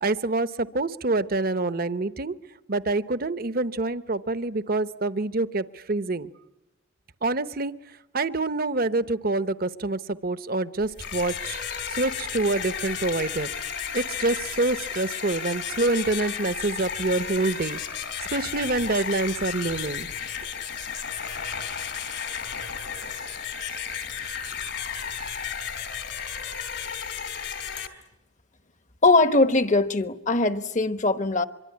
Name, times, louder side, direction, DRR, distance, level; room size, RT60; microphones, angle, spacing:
voice 1, 0.0-2.3 2.7-6.3 7.2-7.7 8.1-11.6 11.9-13.5 13.9-17.8 18.3-20.1, right 2 dB, 50° right, 0.9 m, -26 dB
sound 1, 10.8-27.9, left 7 dB, 65° left, 3.3 m, -33 dB
voice 2, 29.0-31.5, left 2 dB, 40° left, 1.1 m, -21 dB
24.5 x 24.0 x 9.7 m
head